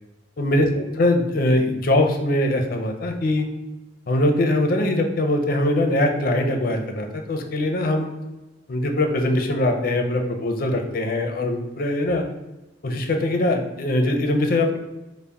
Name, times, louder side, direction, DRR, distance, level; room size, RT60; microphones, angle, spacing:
voice 1, 0.4-3.5 4.1-8.1 8.7-12.2 12.8-14.8, left 1 dB, 50° left, 3 dB, 0.5 m, -22 dB
3.9 x 2.1 x 3.4 m, 1.0 s
head